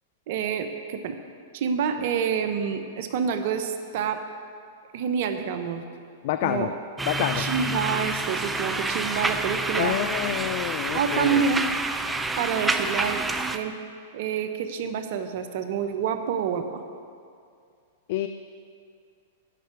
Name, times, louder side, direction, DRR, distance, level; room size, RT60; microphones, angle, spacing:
voice 1, 0.3-1.2 1.5-4.2 4.9-5.8 6.4-6.7 7.3-10.0 10.9-11.7 12.4-13.2 13.5-13.7 14.1-16.8, right 7 dB, 60° right, 8 dB, 0.9 m, -27 dB
voice 2, 6.2-6.7 7.1-7.5 9.8-11.4 18.1-18.3, left 12 dB, 60° left, 10 dB, 0.4 m, -27 dB
sound 1, 7.0-13.6, right 2 dB, 10° right, 0.5 m, -28 dB
9.4 x 5.7 x 8.3 m, 2.3 s
hypercardioid pair, 120°, 0 cm